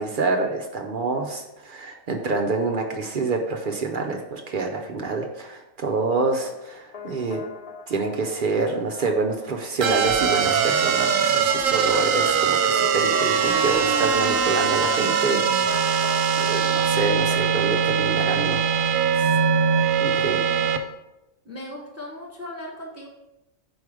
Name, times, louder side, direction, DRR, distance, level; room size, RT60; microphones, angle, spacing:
voice 1, 0.0-7.4 7.9-18.6 19.1-19.4 20.0-20.5, right 3 dB, 60° right, 2 dB, 0.5 m, -27 dB
sound 1, 6.4-18.0, left 5 dB, 70° left, 0.3 m, -41 dB
sound 2, 9.8-20.8, right 6 dB, 80° right, 1.0 m, -21 dB
voice 2, 21.4-23.1, left 1 dB, 15° right, -2 dB, 0.7 m, -37 dB
4.8 x 4.4 x 4.8 m, 0.95 s
omnidirectional pair, 1.4 m